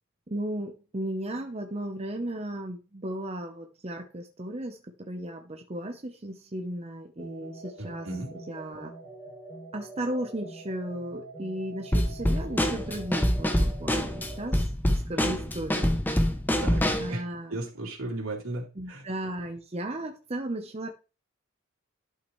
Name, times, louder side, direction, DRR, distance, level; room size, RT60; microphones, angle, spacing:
voice 1, 0.3-8.1 8.5-8.9 9.7-16.0 17.0-17.6 18.7-20.9, right 1 dB, 30° right, 0.8 m, -35 dB
sound 1, 7.2-14.6, right 2 dB, 25° left, 2.1 m, -45 dB
voice 2, 7.8-8.3 16.6-17.2 17.5-19.0, right 2 dB, 80° right, 3.2 m, -35 dB
Drum kit / Snare drum, 11.9-17.1, equal, 10° left, 0.7 m, -26 dB
11.5 x 5.7 x 3.2 m
head